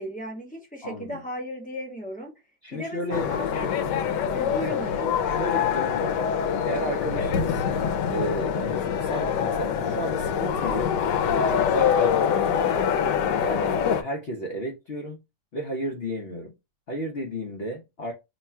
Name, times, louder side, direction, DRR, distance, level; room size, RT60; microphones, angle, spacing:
voice 1, 0.0-2.3 2.7-3.8 4.3-5.1, equal, 5° left, 0.8 m, -36 dB
voice 2, 0.8-1.2 2.6-3.3 4.6-6.2 6.7-7.6 8.1-12.9 13.4-13.7 14.0-15.2 15.5-16.5 16.9-18.1, right 1 dB, 50° left, 0.7 m, -33 dB
sound 1, 3.1-14.0, left 7 dB, 80° left, 1.2 m, -25 dB
3.1 x 2.3 x 4.2 m
omnidirectional pair, 1.9 m